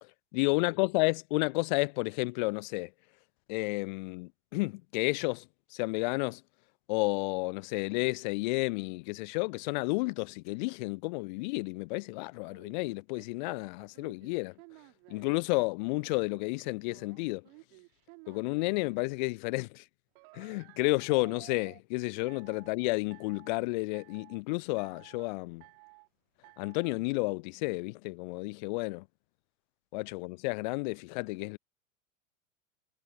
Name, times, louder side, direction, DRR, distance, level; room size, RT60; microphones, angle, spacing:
voice 1, 0.3-2.9 3.5-5.5 5.7-6.4 6.9-14.5 15.1-17.4 18.3-19.8 20.3-25.6 26.6-29.0 29.9-31.6, left 26 dB, 35° left, 0.6 m, -31 dB
sound 1, 12.5-15.4 16.0-18.9 20.2-21.8 22.3-22.7 23.1-23.6 23.9-24.4 24.8-25.3 25.6-26.1 26.4-27.0, right 40 dB or more, 40° right, 1.5 m, -55 dB
figure-of-eight pair, 90°, 38 cm